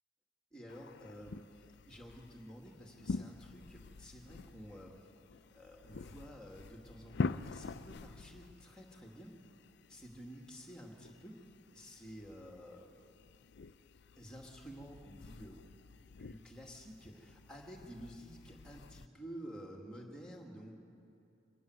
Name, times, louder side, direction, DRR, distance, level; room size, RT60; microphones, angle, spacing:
voice 1, 0.5-1.5 1.9-5.0 5.3-9.3 9.9-11.4 11.7-13.1 14.2-15.7 16.2-20.8, equal, 5° left, 0 dB, 2.2 m, -51 dB
sound 1, 0.7-19.1, left 4 dB, 60° left, 0.5 m, -46 dB
24.5 x 14.5 x 9.6 m, 2.8 s
head